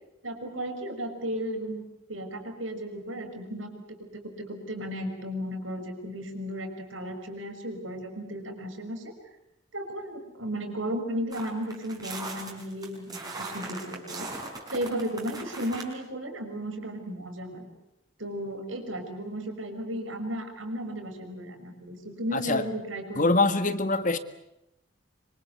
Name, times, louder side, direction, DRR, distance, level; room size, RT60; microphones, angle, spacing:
voice 1, 0.2-9.1 9.7-14.3 14.7-17.7 18.2-23.3, equal, 80° right, 5 dB, 6.1 m, -35 dB
sound 1, 11.3-15.9, right 3 dB, 20° right, 5.4 m, -39 dB
voice 2, 22.3-22.7 23.2-24.2, left 2 dB, 40° left, 11 dB, 1.7 m, -24 dB
26.0 x 25.5 x 8.2 m, 0.85 s
head